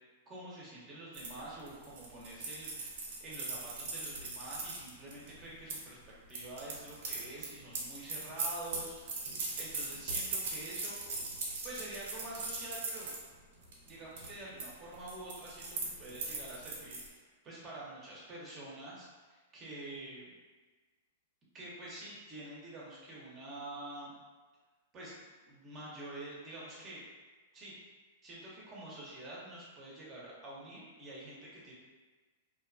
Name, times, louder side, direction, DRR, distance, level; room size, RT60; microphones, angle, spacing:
voice 1, 0.3-6.0 6.3-9.2 9.6-11.0 11.6-13.2 13.8-20.3 21.5-24.1 24.9-25.1 25.5-27.0 27.5-27.7 28.2-31.7, right 1 dB, 30° right, -6 dB, 0.8 m, -47 dB
sound 1, 1.1-5.8 6.3-13.2 13.6-13.9 14.2-14.7 14.9-17.1, right 3 dB, 65° right, 0.6 m, -40 dB
2.5 x 2.2 x 2.5 m, 1.3 s
hypercardioid pair, 125°, 0 cm